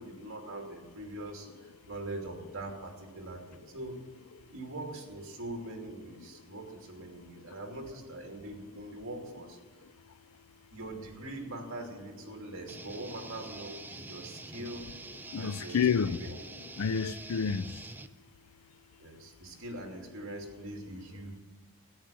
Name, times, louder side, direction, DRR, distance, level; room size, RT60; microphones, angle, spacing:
voice 1, 0.0-4.0 4.5-9.6 10.7-14.9 15.4-15.8 16.1-16.4 19.0-21.4, right 1 dB, 65° right, 2.7 m, -42 dB
voice 2, 7.2-7.6 9.8-9.9 15.3-16.2 16.8-17.8, left 6 dB, 80° left, 0.5 m, -30 dB
sound 1, 12.7-18.1, right 2 dB, 10° right, 0.5 m, -46 dB
13.5 x 9.5 x 7.5 m
head